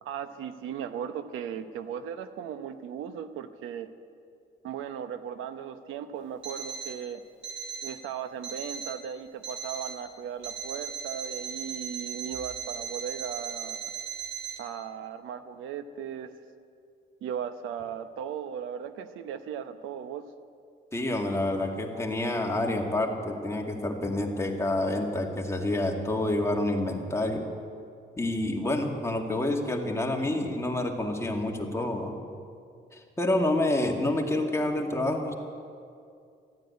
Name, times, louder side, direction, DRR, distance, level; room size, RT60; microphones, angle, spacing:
voice 1, 0.0-3.9 4.6-7.2 7.8-13.8 14.6-16.3 17.2-20.2, right 8 dB, 90° right, 11 dB, 0.9 m, -37 dB
Alarm, 6.4-7.0 7.4-8.0 8.4-9.0 9.4-10.0 10.4-14.6, right 6 dB, 70° right, 2.6 m, -37 dB
voice 2, 20.9-27.4 28.2-32.1 32.9-35.3, left 1 dB, 15° left, 1 dB, 2.1 m, -28 dB
15.0 x 9.6 x 9.4 m, 2.4 s
cardioid pair, 90°, 20 cm